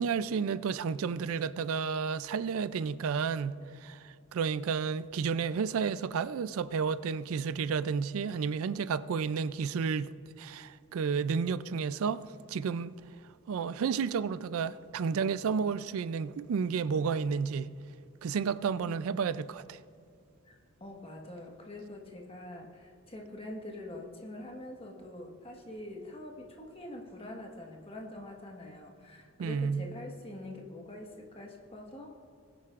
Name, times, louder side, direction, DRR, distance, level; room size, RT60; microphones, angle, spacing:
voice 1, 0.0-10.1 10.4-12.2 12.5-13.0 13.5-17.7 18.2-19.8 29.4-29.8, right 6 dB, 70° right, 0.3 m, -31 dB
voice 2, 18.7-19.1 20.4-32.1, left 1 dB, 25° left, 1.4 m, -45 dB
21.0 x 10.0 x 2.5 m
head